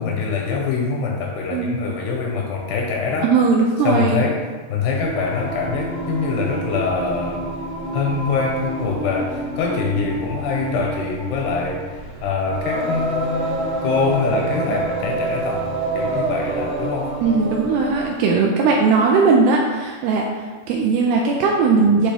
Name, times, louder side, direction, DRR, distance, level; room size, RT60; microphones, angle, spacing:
voice 1, 0.0-3.3 3.8-4.4 4.7-7.5 7.9-15.7 15.9-17.1, left 4 dB, 85° left, 0 dB, 2.4 m, -24 dB
voice 2, 1.5-2.0 3.2-4.2 17.2-22.1, right 4 dB, 85° right, 0 dB, 2.3 m, -18 dB
Singing, 5.0-18.2, right 2 dB, 65° right, 2.1 m, -27 dB
9.7 x 3.7 x 3.4 m, 1.4 s
omnidirectional pair, 5.1 m